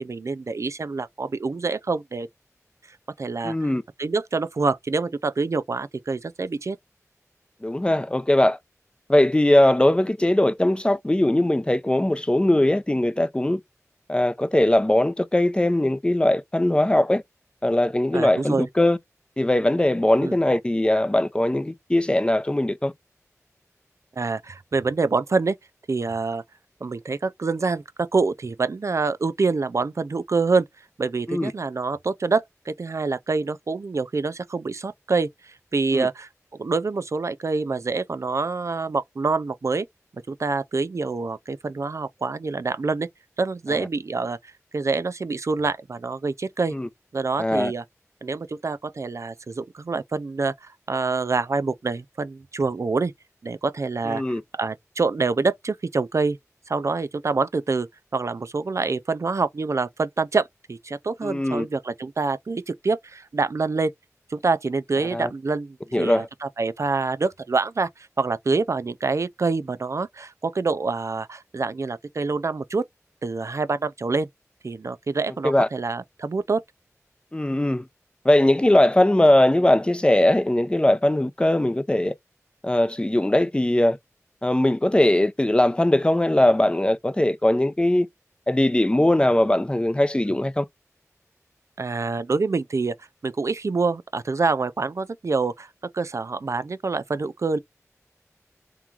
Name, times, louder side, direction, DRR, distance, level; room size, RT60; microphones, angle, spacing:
voice 1, 0.0-2.3 3.2-3.6 4.0-6.8 18.1-18.7 20.2-20.4 24.2-25.6 25.9-26.4 26.8-30.7 31.0-39.9 40.3-43.1 43.4-46.8 47.1-47.8 48.2-53.1 53.4-56.4 56.7-57.9 58.1-63.9 64.3-67.9 68.2-72.8 73.2-74.3 74.6-76.6 91.8-92.9 93.2-95.7 95.9-97.6, right 4 dB, 60° right, 0.4 m, -26 dB
voice 2, 3.4-3.8 7.6-8.6 9.1-13.6 14.1-17.2 17.6-19.0 19.4-22.9 31.3-31.5 35.9-36.1 43.7-43.9 46.7-46.9 47.4-47.7 54.0-54.4 61.2-61.7 65.1-65.3 65.9-66.3 75.4-75.7 77.3-77.8 78.2-82.1 82.6-84.0 84.4-88.1 88.5-90.7, left 1 dB, 20° left, 0.6 m, -20 dB
3.5 x 3.0 x 3.6 m
wide cardioid pair, 65°, 6 cm